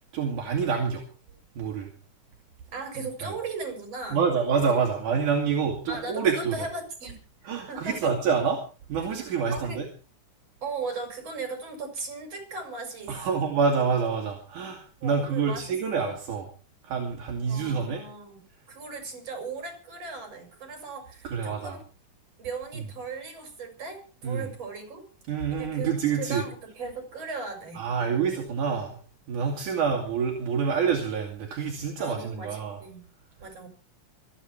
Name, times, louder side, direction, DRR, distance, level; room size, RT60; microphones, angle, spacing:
voice 1, 0.1-1.0 1.6-1.9 3.2-3.3 4.1-6.6 7.4-8.6 8.9-9.8 13.1-16.5 16.8-18.0 21.2-21.8 22.7-22.8 24.2-24.5 25.3-26.4 27.8-29.0 29.3-32.8, right 6 dB, 75° right, 0 dB, 3.8 m, -27 dB
voice 2, 2.7-4.2 5.9-7.2 7.6-8.1 9.5-9.8 10.6-13.5 15.0-16.1 17.5-18.4 18.7-21.8 22.4-25.1 25.5-27.8 32.0-33.1 33.4-33.7, right 4 dB, 50° right, 5 dB, 6.5 m, -37 dB
26.0 x 9.5 x 4.5 m, 0.36 s
omnidirectional pair, 3.6 m